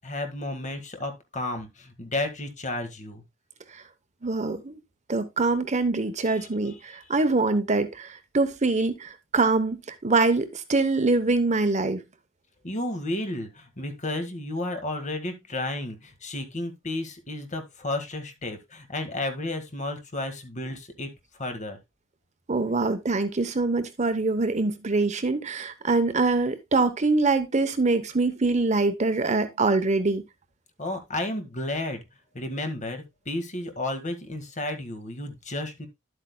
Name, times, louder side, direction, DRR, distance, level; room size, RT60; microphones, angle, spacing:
voice 1, 0.0-3.2 6.3-7.0 12.6-21.1 21.4-21.8 30.8-32.0 32.3-35.9, left 2 dB, 35° left, 1.8 m, -32 dB
voice 2, 4.2-4.8 5.1-12.0 22.5-30.2, right 3 dB, 35° right, 0.9 m, -24 dB
11.5 x 8.2 x 2.2 m
head